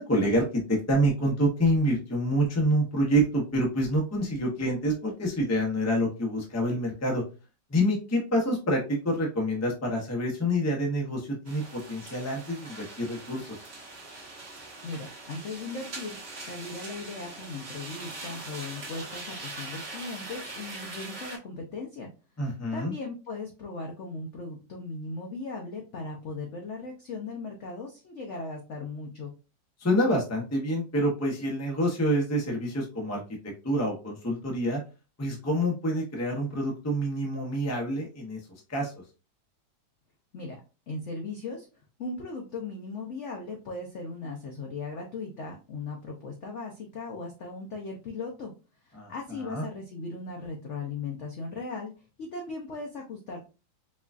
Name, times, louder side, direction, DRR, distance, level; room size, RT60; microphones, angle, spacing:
voice 1, 0.0-7.2 7.7-13.6 22.4-22.9 29.8-33.2 33.6-34.8 35.2-38.4 38.7-38.9 48.9-49.6, equal, 20° left, 0 dB, 0.4 m, -27 dB
sound 1, 11.4-21.4, right 2 dB, 40° right, 1.1 m, -42 dB
voice 2, 14.8-16.2 16.5-22.1 22.7-29.3 40.3-40.6 40.9-41.7 42.0-48.5 48.9-51.9 52.2-53.4, left 3 dB, 75° left, 1 dB, 0.6 m, -38 dB
4.7 x 2.3 x 2.4 m, 0.31 s
omnidirectional pair, 2.1 m